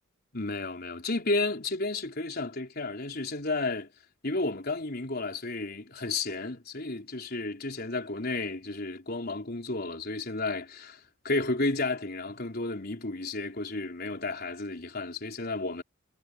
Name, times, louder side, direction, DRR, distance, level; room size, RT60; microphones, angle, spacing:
voice 1, 0.3-3.9 4.2-15.8, left 2 dB, 55° left, 4.2 m, -32 dB
head